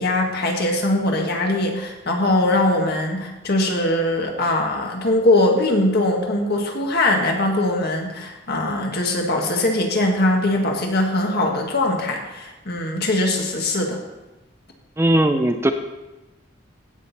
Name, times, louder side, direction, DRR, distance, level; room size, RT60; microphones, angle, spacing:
voice 1, 0.0-14.0, left 1 dB, 55° left, 1 dB, 1.7 m, -21 dB
voice 2, 15.0-15.7, right 1 dB, 15° right, 6 dB, 0.5 m, -18 dB
16.5 x 6.2 x 4.2 m, 1.0 s
head